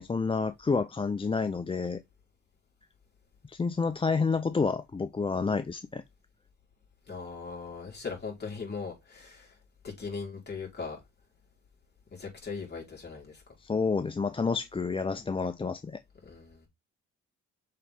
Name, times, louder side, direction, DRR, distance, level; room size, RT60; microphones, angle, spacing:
voice 1, 0.0-2.0 3.5-6.0 13.6-16.0, left 4 dB, 20° left, 0.5 m, -29 dB
voice 2, 7.1-9.6 9.8-11.0 12.1-13.4 16.2-16.7, left 4 dB, 35° left, 4.2 m, -39 dB
6.5 x 4.0 x 3.7 m
cardioid pair, 90°, 30 cm